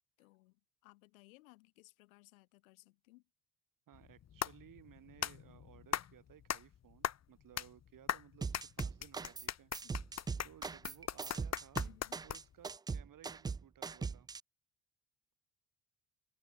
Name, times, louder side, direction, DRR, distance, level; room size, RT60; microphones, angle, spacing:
voice 1, 0.2-3.2 9.8-10.1 11.8-12.3, left 23 dB, 75° left, 4.9 m, -62 dB
sound 1, 3.9-12.7, left 9 dB, 40° left, 1.3 m, -41 dB
voice 2, 3.9-9.7 10.4-11.8 12.2-14.3, right 11 dB, 50° right, 3.2 m, -60 dB
sound 2, 8.4-9.5 9.7-14.4, right 5 dB, 10° right, 0.3 m, -40 dB
figure-of-eight pair, 50°, 42 cm